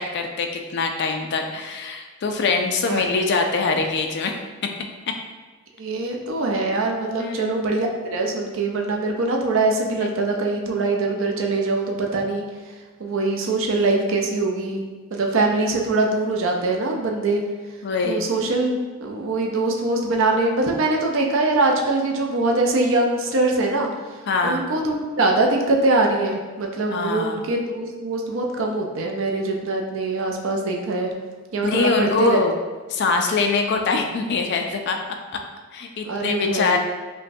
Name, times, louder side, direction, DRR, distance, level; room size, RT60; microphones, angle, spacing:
voice 1, 0.0-4.3 7.2-7.5 17.8-18.2 24.3-24.6 26.9-27.4 31.6-32.6 32.9-35.0 35.7-36.8, left 4 dB, 50° left, 4 dB, 0.4 m, -23 dB
voice 2, 5.8-12.4 13.0-14.8 15.1-17.4 18.0-23.9 24.4-31.1 31.5-32.4 36.0-36.8, right 2 dB, 60° right, 1 dB, 0.5 m, -23 dB
5.1 x 2.2 x 2.6 m, 1.3 s
head